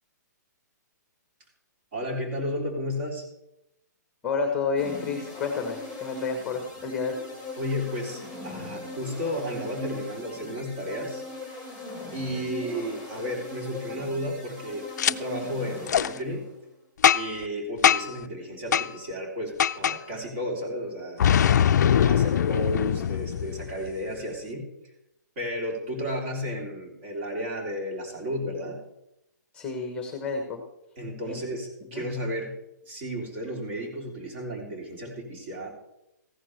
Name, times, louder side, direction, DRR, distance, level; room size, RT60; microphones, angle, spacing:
voice 1, 1.9-3.2 7.6-11.2 12.1-16.5 17.1-21.2 21.7-24.7 25.4-28.8 31.0-32.5 32.8-35.7, equal, 40° right, 1 dB, 3.0 m, -33 dB
voice 2, 4.2-7.2 29.5-30.6 31.3-31.4 31.9-32.0, left 5 dB, 10° left, 5 dB, 1.0 m, -30 dB
sound 1, 4.7-16.5, left 1 dB, 10° right, 3.1 m, -39 dB
Boom, 15.0-15.1 15.9-16.1 17.0-17.4 17.8-18.2 18.7-18.9 19.6-20.0 21.2-23.9, left 9 dB, 65° left, 0.4 m, -22 dB
14.5 x 11.0 x 3.2 m, 0.87 s
hypercardioid pair, 165°, 10 cm